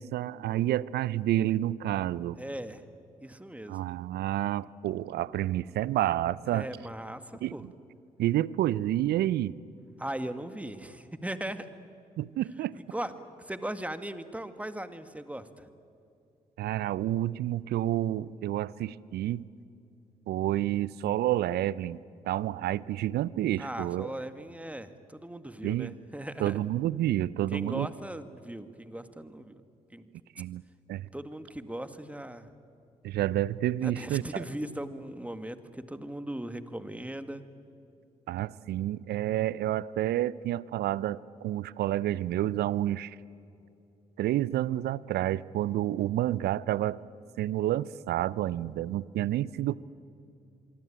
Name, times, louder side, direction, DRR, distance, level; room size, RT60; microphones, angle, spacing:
voice 1, 0.0-2.4 3.7-6.7 7.4-7.7 8.2-9.6 12.2-12.8 16.6-19.4 20.3-22.0 22.3-24.1 25.6-25.9 26.4-27.9 30.4-30.6 30.9-31.1 33.0-34.4 38.3-43.2 44.2-47.0 47.4-49.8, right 13 dB, 65° right, 21 dB, 0.6 m, -29 dB
voice 2, 2.4-2.8 3.2-3.8 6.5-7.6 10.0-11.7 12.7-13.1 13.4-15.7 23.6-26.5 27.5-29.6 29.9-30.1 31.1-32.5 33.8-37.4, right 1 dB, 10° right, 10 dB, 2.0 m, -38 dB
25.5 x 24.0 x 8.9 m, 2.6 s
hypercardioid pair, 40°, 18 cm